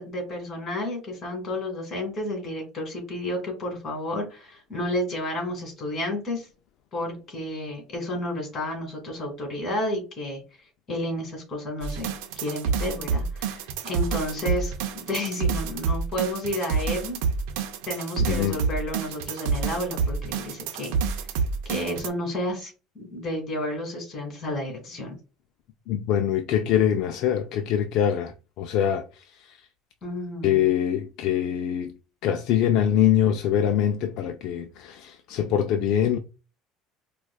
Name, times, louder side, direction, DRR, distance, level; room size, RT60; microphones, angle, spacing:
voice 1, 0.0-6.5 6.9-10.4 10.9-17.2 17.9-21.1 21.7-25.2 30.0-30.6, left 1 dB, 35° left, 1.9 m, -31 dB
sound 1, 11.8-22.1, right 5 dB, 90° right, 0.5 m, -28 dB
voice 2, 18.3-18.6 25.9-28.3 28.6-29.0 29.5-29.6 30.4-31.9 32.2-36.2, left 10 dB, 60° left, 0.3 m, -23 dB
4.6 x 2.3 x 2.3 m
cardioid pair, 145°, 0 cm